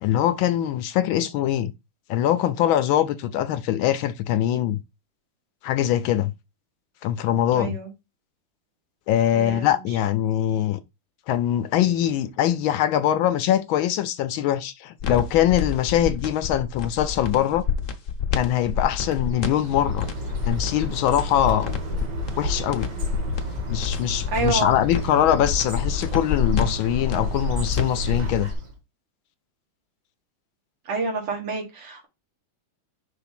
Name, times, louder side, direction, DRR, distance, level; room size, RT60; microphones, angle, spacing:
voice 1, 0.0-1.7 2.1-4.8 5.6-6.3 7.0-7.8 9.1-10.8 11.3-17.6 18.3-20.1 20.5-21.7 22.4-22.9 23.7-28.5, left 11 dB, 75° left, 1.3 m, -22 dB
voice 2, 7.5-7.9 9.3-9.8 24.3-24.8 30.9-32.1, right 4 dB, 80° right, 2.8 m, -28 dB
sound 1, 15.0-28.5, left 6 dB, 50° left, 1.0 m, -28 dB
Bird, 19.1-28.8, right 1 dB, 55° right, 1.7 m, -32 dB
5.6 x 3.4 x 5.8 m
omnidirectional pair, 2.4 m